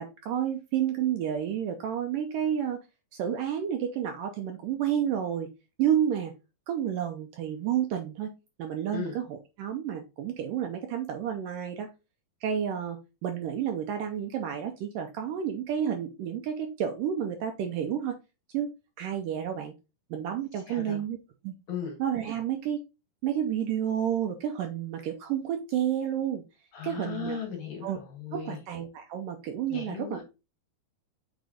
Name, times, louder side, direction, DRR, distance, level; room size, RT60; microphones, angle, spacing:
voice 1, 0.0-2.8 3.2-5.5 5.8-6.3 6.7-8.3 8.6-11.9 12.4-18.2 18.5-18.7 19.0-19.7 20.1-21.2 21.4-21.5 22.0-22.8 23.2-26.4 26.8-27.4 27.8-28.0 28.3-30.2, right 9 dB, 75° right, 4 dB, 2.1 m, -30 dB
voice 2, 20.7-21.0 21.7-22.0 26.7-28.6 29.7-30.2, left 7 dB, 55° left, 1 dB, 2.7 m, -37 dB
6.5 x 4.6 x 3.8 m, 0.27 s
omnidirectional pair, 4.5 m